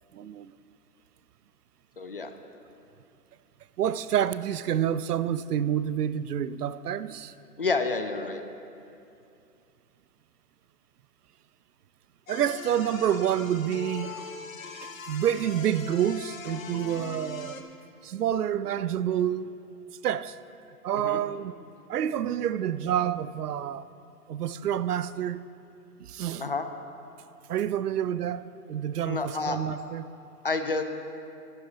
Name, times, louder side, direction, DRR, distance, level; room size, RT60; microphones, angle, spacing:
voice 1, 0.1-0.5 3.8-7.3 12.3-14.2 14.6-17.6 18.0-19.5 20.0-20.4 20.8-21.5 21.9-23.9 24.3-25.4 26.0-26.5 27.5-30.1, right 10 dB, 75° right, 0.5 m, -28 dB
voice 2, 2.0-2.3 7.6-8.4 21.0-21.2 26.4-26.7 29.1-29.6 30.4-30.8, left 3 dB, 40° left, 0.4 m, -29 dB
sound 1, 12.3-17.6, left 5 dB, 60° left, 1.0 m, -41 dB
11.5 x 9.0 x 3.9 m
hypercardioid pair, 155°, 46 cm